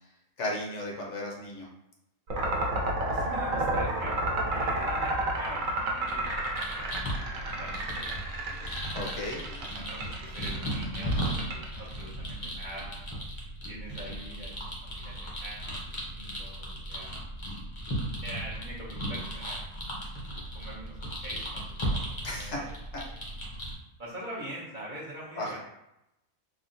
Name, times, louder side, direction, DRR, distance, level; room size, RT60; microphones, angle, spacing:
voice 1, 0.4-1.7 8.9-9.8 22.2-22.6 25.4-25.6, left 1 dB, 65° left, -2 dB, 0.9 m, -35 dB
sound 1, 2.3-12.0, right 2 dB, 80° right, 1.0 m, -31 dB
voice 2, 3.1-8.8 9.1-11.2 11.8-13.0 13.7-14.5 14.8-17.2 18.2-19.6 20.5-21.0 21.2-22.7 23.0-23.2 24.0-25.6, right 1 dB, 50° right, -7 dB, 0.6 m, -43 dB
sound 2, 6.1-23.7, equal, 35° left, 0.5 m, -36 dB
3.5 x 2.1 x 2.5 m, 0.87 s
omnidirectional pair, 1.4 m